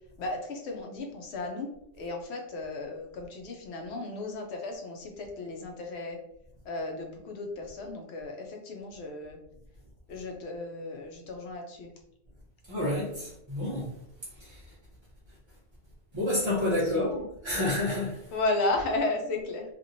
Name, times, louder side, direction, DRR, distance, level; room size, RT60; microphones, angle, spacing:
voice 1, 0.2-1.7 1.9-6.2 6.6-9.4 10.1-11.9 16.8-17.0 18.3-19.6, left 2 dB, 65° left, 2 dB, 0.9 m, -34 dB
voice 2, 12.7-13.9 14.4-14.6 16.1-18.3, left 1 dB, 35° right, -7 dB, 0.4 m, -29 dB
2.9 x 2.5 x 2.6 m, 0.76 s
omnidirectional pair, 1.3 m